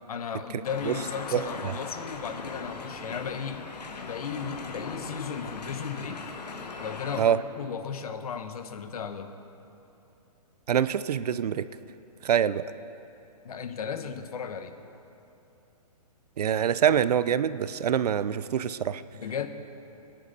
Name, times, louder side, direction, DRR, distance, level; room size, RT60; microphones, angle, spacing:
voice 1, 0.1-3.6 4.0-6.2 6.8-9.3 13.4-14.7 19.1-19.5, left 6 dB, 65° left, 9 dB, 1.0 m, -35 dB
sound 1, 0.6-7.2, left 4 dB, 80° left, 1.4 m, -39 dB
voice 2, 10.7-11.6 12.2-12.6 16.4-19.0, right 9 dB, 70° right, 15 dB, 0.5 m, -25 dB
20.0 x 10.5 x 4.1 m, 2.9 s
hypercardioid pair, 160°, 21 cm